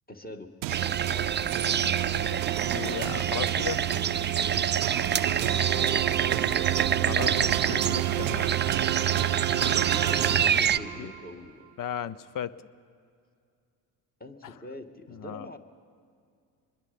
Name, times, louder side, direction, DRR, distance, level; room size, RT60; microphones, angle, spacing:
voice 1, 0.1-0.5 1.0-1.7 5.4-7.8 9.6-11.6 14.2-15.6, left 1 dB, 20° left, 4 dB, 2.1 m, -43 dB
sound 1, 0.6-11.2, right 15 dB, 85° right, 0.7 m, -30 dB
sound 2, 0.7-10.8, right 7 dB, 20° right, 0.5 m, -27 dB
voice 2, 1.5-2.4 2.7-3.8 7.0-8.5 11.0-11.1 11.8-12.5 14.4-14.6 15.1-15.5, left 9 dB, 40° left, 18 dB, 0.8 m, -36 dB
25.5 x 21.5 x 5.4 m, 2.3 s
hypercardioid pair, 60°, 49 cm